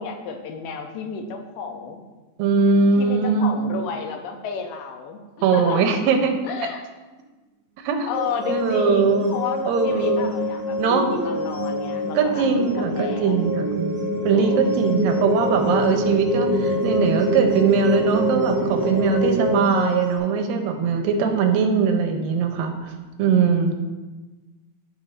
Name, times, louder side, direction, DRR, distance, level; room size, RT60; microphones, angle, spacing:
voice 1, 0.0-2.0 3.0-5.2 5.5-6.0 6.4-6.8 8.1-13.5 14.3-15.0, left 6 dB, 75° left, 4 dB, 2.4 m, -32 dB
voice 2, 2.4-3.6 5.4-6.3 7.8-8.1 8.5-9.4 9.7-10.3 10.8-11.0 12.2-13.9 14.2-22.7 23.2-23.7, right 5 dB, 85° right, 5 dB, 2.5 m, -21 dB
sound 1, 8.1-20.2, left 3 dB, 40° left, 0.5 m, -29 dB
sound 2, 9.4-19.6, right 2 dB, 70° right, 2.3 m, -26 dB
14.0 x 5.7 x 2.6 m, 1.2 s
omnidirectional pair, 4.1 m